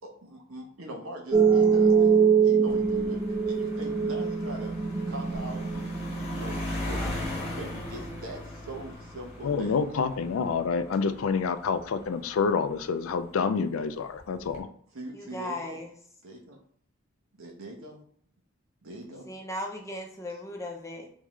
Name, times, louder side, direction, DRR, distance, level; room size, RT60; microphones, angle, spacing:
voice 1, 0.0-2.2 2.4-5.7 6.1-9.8 14.9-15.8 16.2-16.6 17.4-18.0 18.8-19.3, right 1 dB, 85° right, 1 dB, 1.0 m, -42 dB
sound 1, 1.3-8.2, right 6 dB, 20° right, 0.4 m, -24 dB
sound 2, 2.7-13.4 14.2-14.6, left 2 dB, 30° left, 1.0 m, -39 dB
voice 2, 9.4-14.7, left 5 dB, 80° left, 11 dB, 0.4 m, -28 dB
voice 3, 15.1-15.9 19.3-21.1, left 1 dB, 15° left, 1 dB, 0.7 m, -37 dB
3.6 x 3.6 x 3.1 m, 0.62 s
head